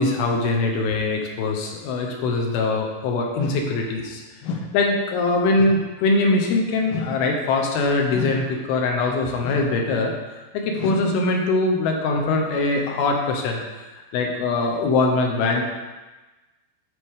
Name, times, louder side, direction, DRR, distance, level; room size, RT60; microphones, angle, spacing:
voice 1, 0.0-4.2 4.7-10.1 10.5-13.6 14.1-15.6, left 3 dB, 75° left, 1 dB, 2.8 m, -22 dB
sound 1, 3.4-3.7 4.4-4.7 5.5-5.9 6.9-7.2 8.1-8.5 9.4-9.8 10.8-11.1, left 4 dB, 90° left, 3.1 m, -30 dB
12.5 x 4.9 x 3.7 m, 1.2 s
omnidirectional pair, 4.9 m